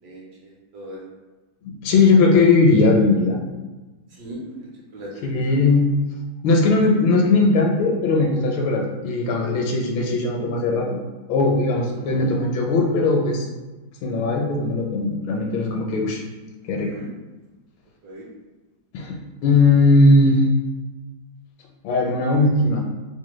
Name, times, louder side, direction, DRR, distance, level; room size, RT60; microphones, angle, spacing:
voice 1, 0.0-1.0 4.1-5.7 11.8-12.3 16.8-17.1 18.0-18.3, right 1 dB, 70° right, -4 dB, 1.1 m, -39 dB
voice 2, 1.6-3.4 5.2-5.8 6.4-11.0 11.3-13.5 14.0-16.2 16.7-16.9 18.9-19.2 19.4-20.4 21.8-22.8, left 3 dB, 80° left, 0 dB, 1.3 m, -18 dB
3.3 x 2.1 x 3.0 m, 1.2 s
omnidirectional pair, 2.2 m